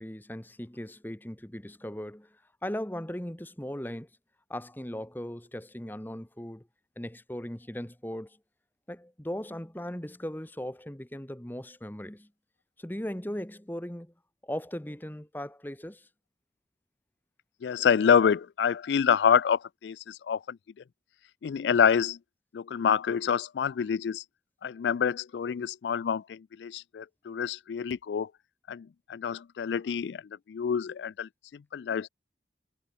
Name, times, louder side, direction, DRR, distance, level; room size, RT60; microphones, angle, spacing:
voice 1, 0.0-4.1 4.5-6.7 7.0-8.4 8.9-12.3 12.8-14.1 14.4-16.1, equal, 10° left, 1.1 m, -38 dB
voice 2, 17.6-20.6 21.4-22.2 22.5-24.2 24.6-28.3 28.7-30.2 30.5-31.3 31.7-32.1, left 7 dB, 80° left, 0.4 m, -27 dB
head